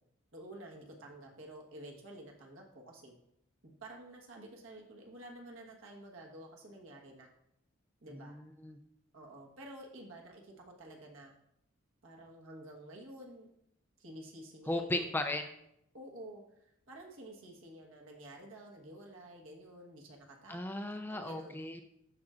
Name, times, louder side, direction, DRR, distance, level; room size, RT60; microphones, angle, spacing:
voice 1, 0.3-3.1 3.6-7.3 8.0-8.4 9.1-11.3 12.0-13.5 14.0-15.1 15.9-21.6, right 1 dB, 75° right, 0 dB, 1.4 m, -51 dB
voice 2, 8.2-8.8 14.7-15.5 20.5-21.8, left 1 dB, 10° left, 6 dB, 0.3 m, -36 dB
12.0 x 4.3 x 2.5 m, 0.76 s
head